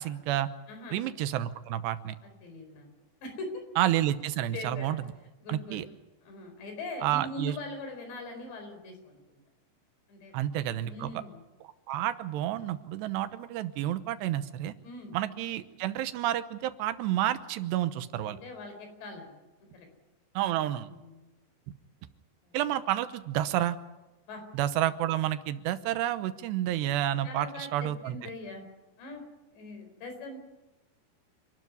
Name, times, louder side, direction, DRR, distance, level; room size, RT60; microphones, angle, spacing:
voice 1, 0.0-0.5 0.9-2.2 3.8-5.0 5.5-5.9 7.0-7.6 10.3-11.1 11.9-14.7 15.1-18.4 20.4-20.9 21.7-21.8 22.5-23.8 24.5-28.2, right 13 dB, 85° right, 12 dB, 3.1 m, -30 dB
voice 2, 0.7-1.0 2.2-2.9 3.2-3.6 4.5-5.0 5.4-5.8 6.2-9.4 10.1-10.4 10.8-11.4 14.8-15.2 18.2-19.4 19.7-19.9 20.8-21.3 22.4-22.6 24.3-24.4 26.7-27.0 27.2-28.6 29.0-29.2 29.5-30.4, left 2 dB, 85° left, 5 dB, 6.8 m, -42 dB
27.5 x 12.5 x 9.6 m, 1.1 s
omnidirectional pair, 4.9 m